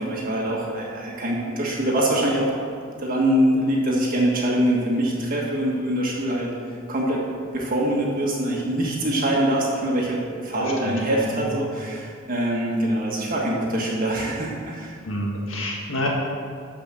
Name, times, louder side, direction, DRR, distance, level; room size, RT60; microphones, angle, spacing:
voice 1, 0.0-2.5 3.0-6.5 6.9-7.2 7.5-15.0, right 1 dB, 45° right, -3 dB, 1.5 m, -24 dB
voice 2, 10.5-11.6 15.0-16.1, left 1 dB, 75° left, -2 dB, 1.8 m, -29 dB
13.0 x 5.1 x 7.6 m, 2.2 s
head